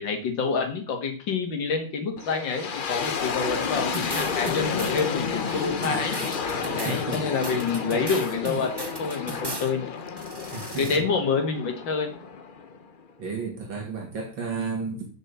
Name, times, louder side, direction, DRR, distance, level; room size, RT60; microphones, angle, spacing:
voice 1, 0.0-6.2 6.7-9.9 10.8-12.1, left 5 dB, 70° left, 2.4 m, -27 dB
sound 1, 2.2-13.1, left 5 dB, 90° left, 0.4 m, -31 dB
sound 2, 3.9-5.0 5.4-9.7 10.1-11.0, right 2 dB, 20° right, 0.6 m, -37 dB
voice 2, 6.7-7.2 10.5-11.0 13.2-15.1, right 4 dB, 80° right, 3.1 m, -32 dB
6.9 x 6.0 x 6.8 m
omnidirectional pair, 2.1 m